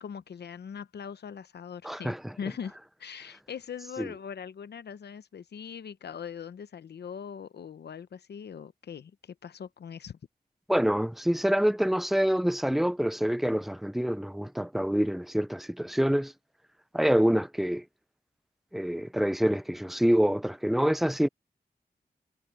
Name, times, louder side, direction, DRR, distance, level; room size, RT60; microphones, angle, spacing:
voice 1, 0.0-10.2, left 7 dB, 85° left, 0.8 m, -41 dB
voice 2, 1.8-2.2 4.0-4.1 10.7-16.3 16.9-17.8 18.7-21.3, equal, ahead, 0.4 m, -26 dB
cardioid pair, 45°, 17 cm